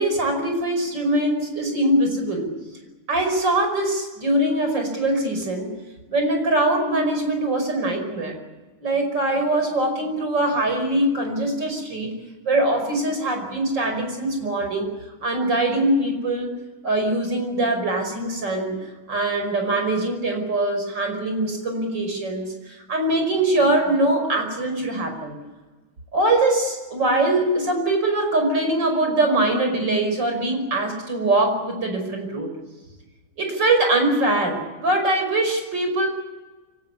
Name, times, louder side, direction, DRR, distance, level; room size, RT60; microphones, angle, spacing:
voice 1, 0.0-2.5 3.1-5.7 6.1-8.4 8.8-12.1 12.4-14.9 15.2-16.5 16.8-18.8 19.1-25.4 26.1-32.5 33.4-36.1, right 2 dB, 55° right, 4 dB, 6.1 m, -22 dB
25.0 x 17.5 x 9.8 m, 1.2 s
omnidirectional pair, 2.3 m